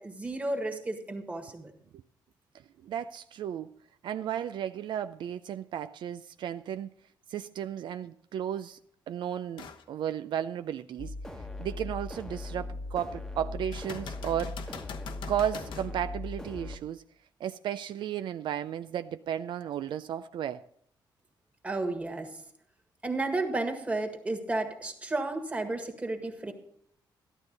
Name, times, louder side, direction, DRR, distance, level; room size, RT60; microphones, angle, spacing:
voice 1, 0.0-1.7 21.6-22.4 23.0-26.5, right 2 dB, 15° right, 4 dB, 1.7 m, -32 dB
voice 2, 2.8-3.7 4.0-6.9 7.3-8.8 9.1-14.8 15.3-17.0 17.4-20.6, right 9 dB, 75° right, 11 dB, 0.4 m, -34 dB
sound 1, 9.6-9.9 10.4-10.5 13.7-15.9 19.6-19.7, left 6 dB, 80° left, 1.1 m, -43 dB
sound 2, 11.0-16.8, left 2 dB, 5° left, 1.1 m, -39 dB
13.0 x 12.0 x 4.0 m, 0.66 s
cardioid pair, 135°, 8 cm